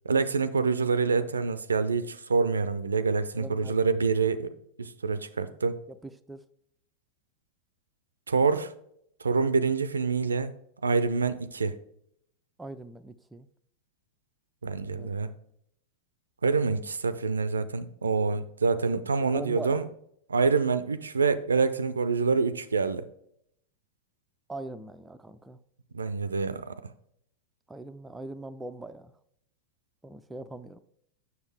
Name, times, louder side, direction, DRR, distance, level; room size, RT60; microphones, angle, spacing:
voice 1, 0.1-4.5 4.8-5.8 8.3-8.7 9.2-10.5 10.8-11.8 14.6-15.3 16.4-19.8 20.3-23.1 25.9-26.7, right 4 dB, 75° right, 0.4 m, -26 dB
voice 2, 3.4-3.8 5.9-6.4 12.6-13.5 14.9-15.3 19.3-19.9 24.5-25.6 27.7-29.1 30.0-30.8, right 2 dB, 10° right, 0.4 m, -41 dB
7.2 x 6.2 x 3.4 m
figure-of-eight pair, 90°, 0 cm